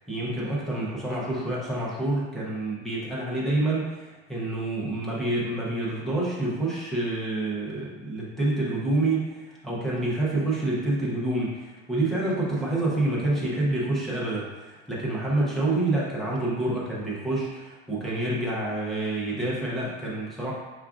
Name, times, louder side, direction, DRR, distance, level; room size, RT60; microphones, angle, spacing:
voice 1, 0.0-20.5, right 2 dB, ahead, -7 dB, 0.3 m, -28 dB
4.8 x 2.3 x 3.4 m, 1.2 s
cardioid pair, 180°, 30 cm